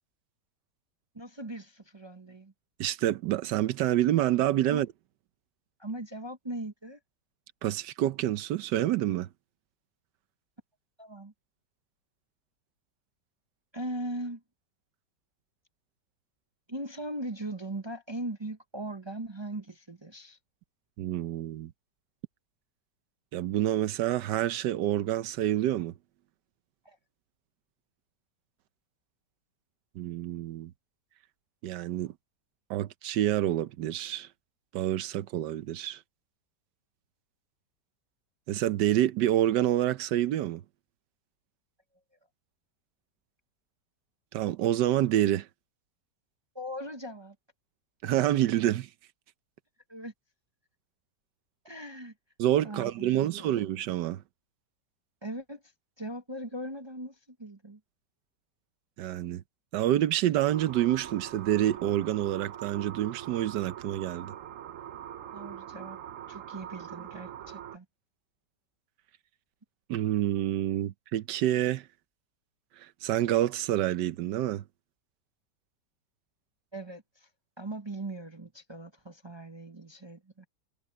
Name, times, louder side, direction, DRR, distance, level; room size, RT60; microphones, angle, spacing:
voice 1, 1.1-2.5 4.7-4.8 5.8-7.0 11.0-11.3 13.7-14.4 16.7-20.4 26.8-27.0 46.5-47.4 49.9-50.1 51.6-52.1 52.6-53.5 55.2-55.6 56.0-57.8 65.3-66.0 66.3-67.8 76.7-77.3 77.6-80.5, right 1 dB, 25° right, 0.5 m, -39 dB
voice 2, 2.8-4.9 7.6-9.3 21.0-21.7 23.3-25.9 30.0-30.7 31.6-32.1 32.7-34.3 34.7-36.0 38.5-40.6 44.3-45.5 48.0-48.9 52.4-54.2 59.0-59.4 59.7-64.4 69.9-71.9 72.8-74.6, right 13 dB, 85° right, 1.3 m, -27 dB
sound 1, 60.5-67.8, right 10 dB, 60° right, 0.9 m, -43 dB
omnidirectional pair, 1.8 m